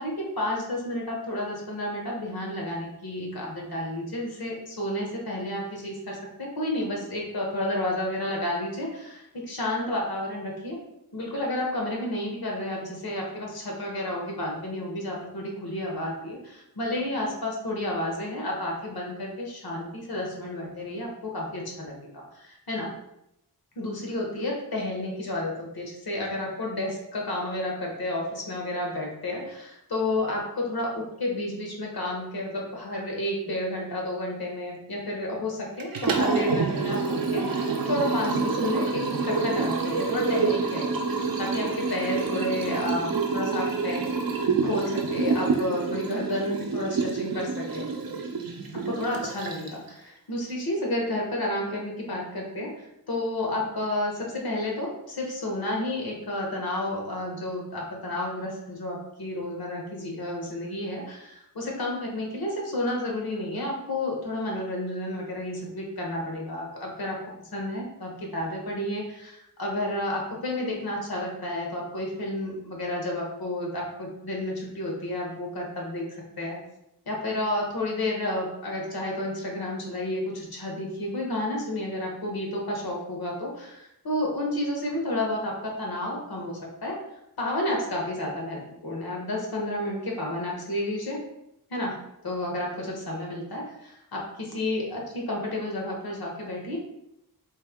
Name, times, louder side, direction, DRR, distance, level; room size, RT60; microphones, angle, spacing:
voice 1, 0.0-10.8 11.1-22.9 23.8-44.1 44.5-47.9 48.7-67.2 67.5-76.1 76.4-76.6 77.1-87.0 87.4-91.2 91.7-96.8, left 1 dB, 70° left, -1 dB, 1.0 m, -31 dB
Liquid, 35.8-49.9, right 4 dB, 65° right, 0.5 m, -27 dB
3.3 x 2.7 x 3.5 m, 0.83 s
wide cardioid pair, 105°, 38 cm